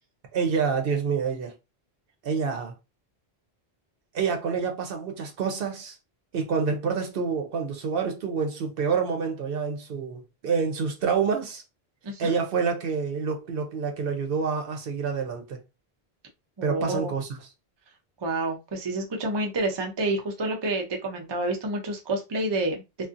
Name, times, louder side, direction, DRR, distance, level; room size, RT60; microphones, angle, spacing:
voice 1, 0.3-1.5 2.2-2.7 4.1-6.0 6.3-11.6 12.2-15.6 16.6-17.3, right 5 dB, 65° right, 0.8 m, -27 dB
voice 2, 16.6-17.1 18.2-23.1, right 2 dB, 35° right, 0.4 m, -29 dB
2.6 x 2.4 x 2.4 m
omnidirectional pair, 1.1 m